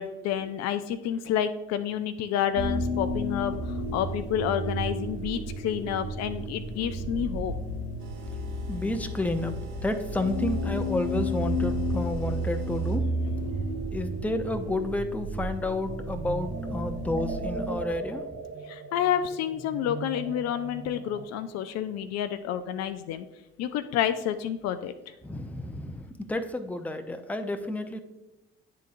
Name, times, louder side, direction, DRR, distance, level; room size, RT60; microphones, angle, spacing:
voice 1, 0.0-7.5 18.7-23.3 23.6-25.1, left 10 dB, 55° left, 10 dB, 0.4 m, -29 dB
sound 1, 2.5-17.8, equal, 90° left, 0.9 m, -32 dB
sound 2, 8.0-13.0, right 4 dB, 65° right, 1.4 m, -46 dB
voice 2, 8.7-9.5 9.8-13.1 13.9-18.2 25.2-28.0, left 2 dB, 5° left, 7 dB, 0.6 m, -31 dB
sound 3, 15.9-21.3, right 4 dB, 40° right, 0.6 m, -39 dB
10.0 x 3.8 x 2.5 m, 0.99 s
figure-of-eight pair, 45°, 31 cm